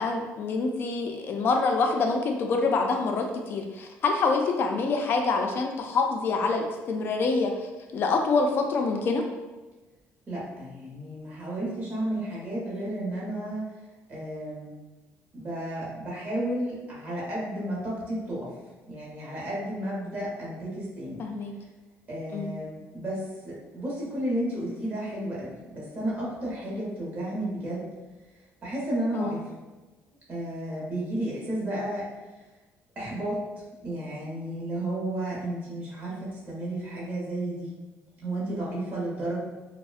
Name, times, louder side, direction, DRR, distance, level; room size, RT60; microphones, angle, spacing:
voice 1, 0.0-7.5 7.9-9.2 21.2-21.5 22.3-22.5 29.1-29.4, left 4 dB, 45° left, 3 dB, 0.3 m, -26 dB
voice 2, 10.3-13.6 14.1-14.8 15.3-18.5 18.9-21.2 22.1-27.8 28.6-29.5 30.3-32.1 33.0-33.4 33.8-37.7 38.2-39.4, right 1 dB, 35° right, -6 dB, 0.8 m, -32 dB
2.6 x 2.0 x 2.4 m, 1.2 s
cardioid pair, 140°, 5 cm